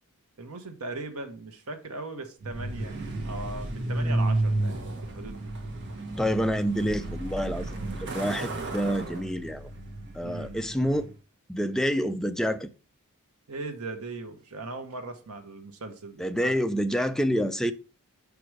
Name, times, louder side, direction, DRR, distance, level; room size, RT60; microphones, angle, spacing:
voice 1, 0.4-3.0 3.2-5.5 10.2-10.6 13.5-16.6, right 2 dB, 80° right, 1.1 m, -39 dB
Truck, 2.4-11.1, right 2 dB, 55° right, 1.4 m, -32 dB
voice 2, 6.2-9.7 10.1-11.1 11.5-12.7 16.2-17.7, equal, ahead, 0.4 m, -28 dB
5.1 x 4.8 x 4.8 m
head